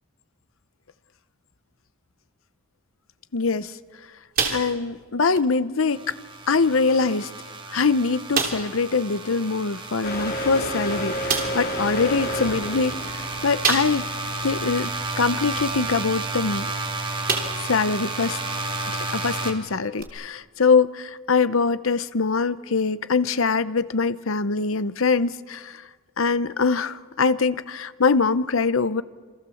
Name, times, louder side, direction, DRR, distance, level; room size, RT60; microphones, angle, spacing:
voice 1, 3.3-3.7 4.5-6.2 6.5-7.3 7.7-14.0 14.4-16.7 17.6-18.4 18.9-25.8 26.2-29.0, left 4 dB, 75° left, 0.8 m, -23 dB
sound 1, 4.3-5.0 5.3-5.5 6.1-6.2 7.0-7.1 7.5-7.6 8.3-8.8 10.4-10.5 11.3-11.7 13.6-14.2 14.7-14.8 16.6-16.8 17.3-17.8 18.2-18.3 20.0-20.1, right 6 dB, 45° right, 3.5 m, -27 dB
sound 2, 5.9-19.5, right 2 dB, 25° right, 2.8 m, -32 dB
sound 3, 10.0-16.6, equal, 50° left, 3.5 m, -31 dB
27.5 x 27.5 x 7.1 m
head